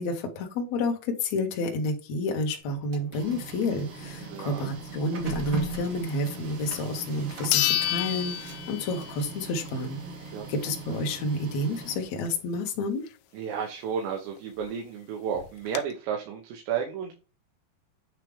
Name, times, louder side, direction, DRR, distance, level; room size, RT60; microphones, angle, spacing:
voice 1, 0.0-10.0 10.5-13.0, left 2 dB, 70° left, 2 dB, 1.8 m, -30 dB
Printer, 2.6-12.4, right 2 dB, 65° right, 1.7 m, -40 dB
voice 2, 4.2-4.7 10.3-10.5 13.3-17.1, right 7 dB, 80° right, 2 dB, 3.2 m, -32 dB
sound 1, 6.7-6.8 7.5-9.3 9.7-9.8 14.4-14.5 14.7-14.8 15.3-15.8, left 14 dB, 85° left, 2.8 m, -28 dB
9.1 x 3.3 x 3.3 m, 0.33 s
omnidirectional pair, 5.1 m